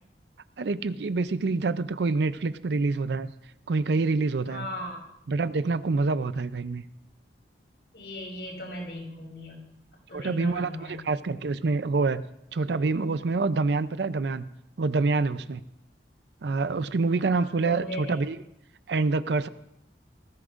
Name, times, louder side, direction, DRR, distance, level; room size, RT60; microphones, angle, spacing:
voice 1, 0.6-3.3 3.7-4.7 5.3-6.8 10.1-12.3 12.5-14.5 14.8-15.6 16.4-18.4 18.9-19.5, right 3 dB, 70° right, 14 dB, 0.5 m, -26 dB
voice 2, 4.5-5.0 7.9-9.6 10.1-10.9 17.1-18.1, left 1 dB, 70° left, -2 dB, 6.2 m, -38 dB
18.5 x 15.0 x 2.5 m, 0.83 s
head